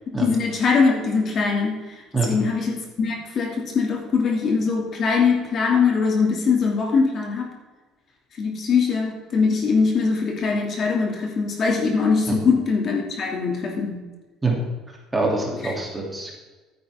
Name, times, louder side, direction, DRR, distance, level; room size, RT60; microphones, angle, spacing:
voice 1, 0.2-7.5 8.4-14.0, left 5 dB, 45° left, 0 dB, 2.7 m, -22 dB
voice 2, 15.1-16.3, right 3 dB, 15° right, -1 dB, 3.1 m, -24 dB
14.0 x 9.6 x 3.8 m, 1.2 s
cardioid pair, 120°, 0 cm